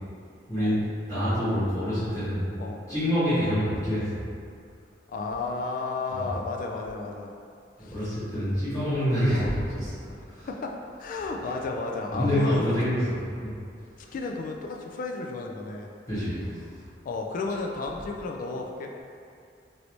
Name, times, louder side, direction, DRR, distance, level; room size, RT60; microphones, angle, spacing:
voice 1, 0.5-0.8 1.1-2.5 2.9-4.1 6.1-6.3 7.8-10.5 11.4-11.5 12.1-13.5 14.0-14.1 16.1-16.8, equal, 20° left, -17 dB, 1.4 m, -27 dB
voice 2, 5.1-7.3 7.8-8.0 9.3-9.5 10.1-10.2 10.4-12.7 14.1-15.9 17.0-18.9, left 3 dB, 50° left, 1 dB, 0.3 m, -33 dB
3.1 x 2.6 x 3.0 m, 2.4 s
head